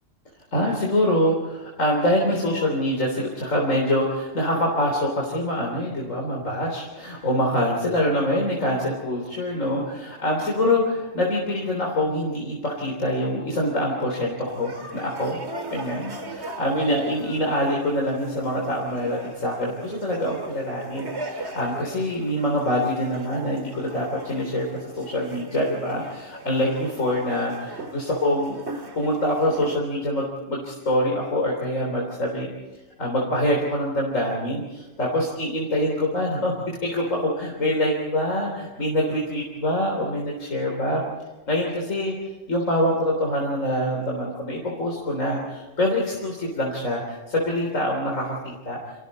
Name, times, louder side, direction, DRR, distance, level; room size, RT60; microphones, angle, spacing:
voice 1, 0.5-15.4 15.7-24.7 24.9-28.5 29.0-32.5 33.0-36.5 36.8-41.0 41.5-42.1 42.5-48.8, left 1 dB, 80° left, -1 dB, 4.0 m, -25 dB
sound 1, 14.5-29.8, right 2 dB, 60° right, 2.4 m, -39 dB
30.0 x 26.0 x 4.2 m, 1.1 s
omnidirectional pair, 1.3 m